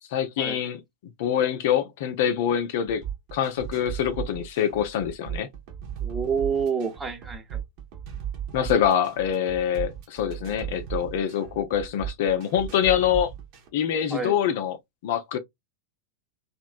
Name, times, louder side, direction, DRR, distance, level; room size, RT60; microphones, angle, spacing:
voice 1, 0.1-0.8 1.2-3.0 3.3-5.5 8.5-13.3 13.7-14.8 15.0-15.4, left 9 dB, 50° left, 0.5 m, -25 dB
sound 1, 2.9-13.7, right 9 dB, 45° right, 0.9 m, -36 dB
voice 2, 6.0-7.6 14.1-14.3, right 6 dB, 15° right, 0.8 m, -28 dB
3.0 x 2.4 x 2.4 m
figure-of-eight pair, 90°, 0 cm